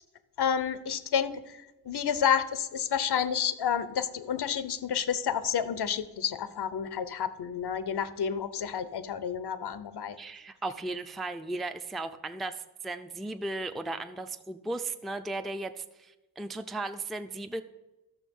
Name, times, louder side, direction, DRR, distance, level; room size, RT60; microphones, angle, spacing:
voice 1, 0.4-1.3 1.9-10.2, left 8 dB, 90° left, 13 dB, 0.8 m, -30 dB
voice 2, 10.2-17.6, right 2 dB, ahead, 8 dB, 0.4 m, -36 dB
13.0 x 6.6 x 5.4 m, 1.1 s
wide cardioid pair, 150°, 38 cm